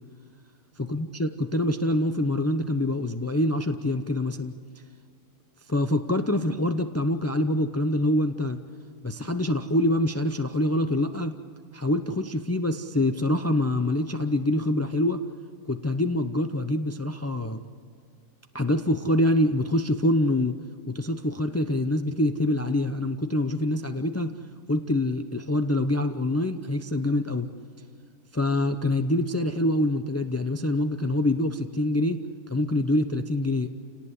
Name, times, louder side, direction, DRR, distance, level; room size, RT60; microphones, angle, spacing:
voice 1, 0.8-4.5 5.7-8.6 9.0-11.3 11.7-15.3 15.7-17.6 18.5-20.6 20.9-24.4 24.7-27.5 28.3-32.2 32.5-33.7, left 1 dB, 25° left, 7 dB, 0.3 m, -25 dB
29.5 x 18.5 x 8.3 m, 2.1 s
omnidirectional pair, 1.7 m